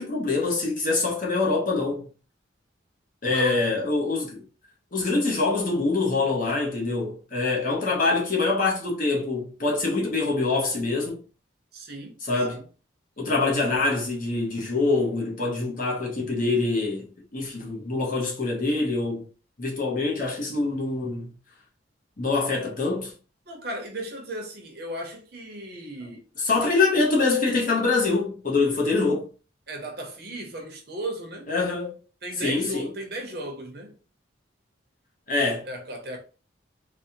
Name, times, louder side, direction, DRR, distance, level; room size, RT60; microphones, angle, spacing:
voice 1, 0.0-2.1 3.2-4.4 4.9-11.2 12.2-12.6 13.2-19.3 19.6-21.3 22.2-23.1 26.4-29.3 31.5-31.9 32.4-32.9 35.3-35.6, left 3 dB, 45° left, 0.9 m, -25 dB
voice 2, 3.3-3.7 11.7-12.2 12.5-12.6 23.5-26.2 26.5-26.8 29.7-31.5 32.2-33.9 35.7-36.2, right 1 dB, 55° right, 0.9 m, -35 dB
3.3 x 2.2 x 2.8 m
head